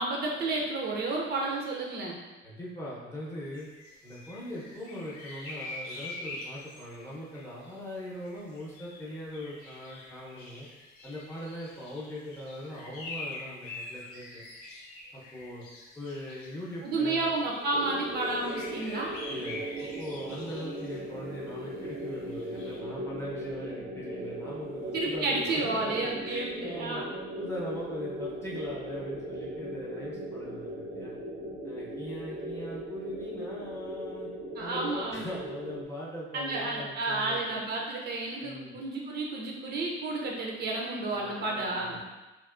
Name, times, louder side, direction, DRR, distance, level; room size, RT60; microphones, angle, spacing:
voice 1, 0.0-2.2 16.8-19.2 24.9-27.1 34.6-35.3 36.3-42.0, right 2 dB, 50° right, -1 dB, 0.5 m, -31 dB
voice 2, 2.4-3.7 4.0-10.7 11.0-14.4 15.1-15.6 15.9-17.3 19.3-19.7 20.0-27.0 27.4-31.2 31.6-34.3 34.6-37.6 38.4-38.7 41.1-42.0, left 1 dB, 15° left, -7 dB, 0.7 m, -40 dB
sound 1, 3.5-16.6 17.0-22.8, left 2 dB, 85° left, 0.8 m, -45 dB
sound 2, 17.3-21.8 25.0-25.2, right 2 dB, 55° left, 0.6 m, -45 dB
sound 3, 17.7-35.8, right 1 dB, 90° right, 0.7 m, -38 dB
3.5 x 2.5 x 2.4 m, 1.1 s
cardioid pair, 155°, 21 cm